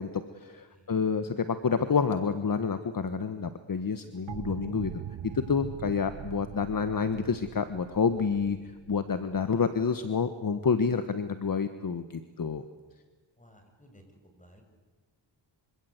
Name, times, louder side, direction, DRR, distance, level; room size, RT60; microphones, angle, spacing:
voice 1, 0.0-4.9 5.3-8.6 8.9-12.6, left 5 dB, 45° left, 10 dB, 1.4 m, -28 dB
voice 2, 0.7-1.1 9.5-9.7 13.4-14.0 14.3-14.6, equal, 15° left, 4 dB, 6.6 m, -57 dB
sound 1, 4.3-10.0, right 10 dB, 65° right, 1.0 m, -42 dB
26.0 x 25.5 x 8.2 m, 1.3 s
cardioid pair, 85°, 48 cm